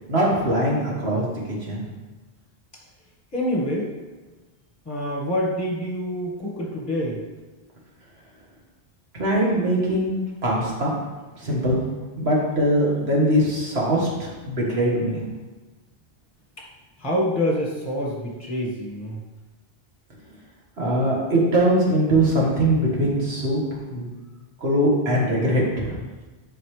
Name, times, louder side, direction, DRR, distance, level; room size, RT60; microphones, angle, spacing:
voice 1, 0.1-1.3 1.6-1.8 9.2-10.2 10.4-10.9 11.4-11.8 12.2-15.2 20.8-23.6 23.9-24.1 24.6-26.0, right 1 dB, 65° right, -4 dB, 1.9 m, -21 dB
voice 2, 3.3-3.9 4.9-7.2 16.6-16.7 17.0-19.2, equal, 15° left, -3 dB, 1.3 m, -26 dB
11.0 x 4.3 x 3.3 m, 1.2 s
omnidirectional pair, 1.1 m